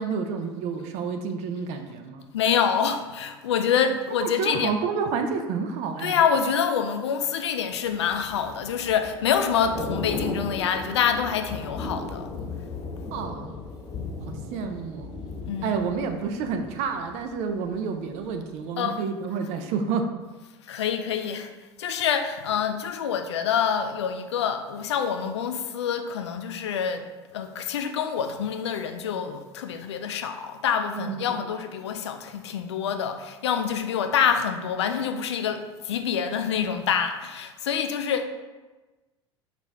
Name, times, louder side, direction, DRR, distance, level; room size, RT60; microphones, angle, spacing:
voice 1, 0.0-2.2 4.2-6.2 13.1-13.6 14.3-15.2 15.6-20.1 30.9-31.6, right 5 dB, 50° right, 6 dB, 0.5 m, -29 dB
voice 2, 2.3-4.7 6.0-12.3 15.4-15.8 18.8-19.0 20.7-21.5 21.8-27.0 27.3-38.3, left 7 dB, 75° left, 7 dB, 0.4 m, -26 dB
Thunder / Rain, 7.8-17.8 18.1-18.4, left 3 dB, 30° left, 1.2 m, -36 dB
5.0 x 2.5 x 3.3 m, 1.2 s
figure-of-eight pair, 75°, 14 cm